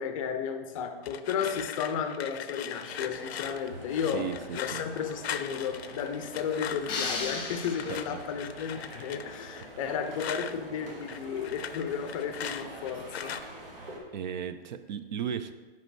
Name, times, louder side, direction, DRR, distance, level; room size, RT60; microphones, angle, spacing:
voice 1, 0.0-13.4, left 7 dB, 35° left, 8 dB, 0.5 m, -33 dB
sound 1, 1.0-7.1 7.7-10.5 10.9-13.4, left 9 dB, 90° left, 0.5 m, -40 dB
sound 2, 2.9-14.0, right 1 dB, 65° right, 1.8 m, -46 dB
voice 2, 4.1-4.8 7.9-8.2 9.8-9.9 14.1-15.5, right 8 dB, 50° right, 11 dB, 0.4 m, -36 dB
sound 3, 6.9-8.4, left 4 dB, 15° left, 1.0 m, -35 dB
5.4 x 5.2 x 4.5 m, 1.3 s
hypercardioid pair, 145°, 30 cm